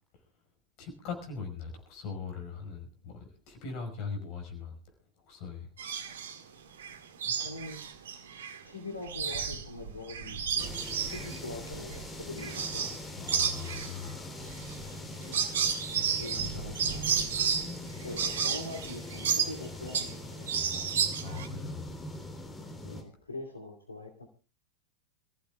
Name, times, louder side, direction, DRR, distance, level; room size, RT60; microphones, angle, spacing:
voice 1, 0.8-6.5 7.2-7.3 13.2-14.5 15.9-16.7 21.2-22.0, left 5 dB, 40° left, 5 dB, 5.2 m, -41 dB
sound 1, 5.8-6.4 6.8-8.6 8.9-13.0 13.3-20.2 20.5-21.5, right 7 dB, 65° right, 1.8 m, -32 dB
voice 2, 6.9-7.8 8.6-13.0 15.2-15.5 16.2-17.1 18.0-20.9 22.8-24.3, left 2 dB, 75° left, 3 dB, 2.5 m, -43 dB
sound 2, 10.6-23.0, left 1 dB, 15° left, 3.5 m, -42 dB
27.5 x 15.0 x 2.4 m, 0.32 s
figure-of-eight pair, 90°, 0 cm